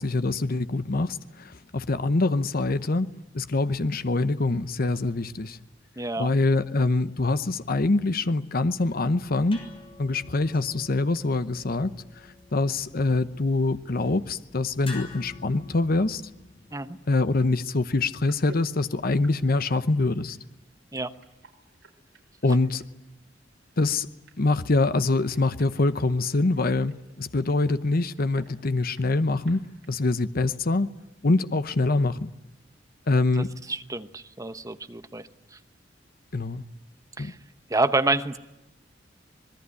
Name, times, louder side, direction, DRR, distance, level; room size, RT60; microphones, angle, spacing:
voice 1, 0.0-5.6 6.2-9.6 10.0-11.9 12.5-16.2 17.1-20.4 22.4-22.8 23.8-24.1 24.4-29.6 29.9-30.9 31.2-32.3 33.1-33.5 36.3-36.6 37.2-37.3, left 2 dB, 50° left, 0.9 m, -24 dB
voice 2, 6.0-6.3 16.7-17.0 20.9-21.1 33.4-35.6 37.2-37.4 37.7-38.4, right 2 dB, 20° right, 0.9 m, -28 dB
sound 1, 8.8-16.7, left 3 dB, 30° left, 6.3 m, -48 dB
sound 2, 17.7-30.2, right 2 dB, 75° right, 5.7 m, -56 dB
26.0 x 20.5 x 9.7 m
head